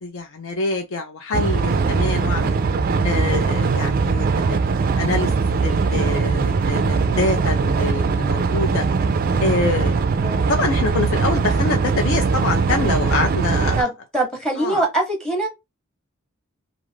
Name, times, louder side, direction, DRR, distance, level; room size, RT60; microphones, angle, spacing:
voice 1, 0.0-2.6 3.0-4.7 5.0-8.8 9.4-10.0 10.5-13.9 14.6-14.8, left 3 dB, 65° left, 0.5 m, -25 dB
sound 1, 1.3-13.8, right 4 dB, 45° right, 0.3 m, -20 dB
voice 2, 13.8-15.5, right 2 dB, 5° left, 0.8 m, -23 dB
2.5 x 2.4 x 3.1 m
head